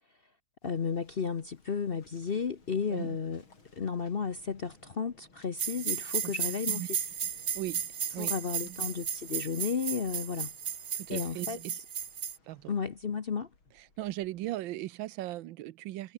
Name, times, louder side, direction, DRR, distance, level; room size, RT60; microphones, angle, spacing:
Waves surf, 0.6-14.6, left 3 dB, 80° left, 5.6 m, -62 dB
voice 1, 0.6-3.4 3.8-7.0 8.2-10.5 11.1-11.6 12.7-13.5, left 6 dB, 45° left, 0.7 m, -33 dB
sound 1, 5.6-12.4, right 8 dB, 50° right, 0.7 m, -34 dB
voice 2, 10.9-11.8 12.5-12.7 14.0-16.1, right 15 dB, 75° right, 1.4 m, -38 dB
omnidirectional pair, 2.2 m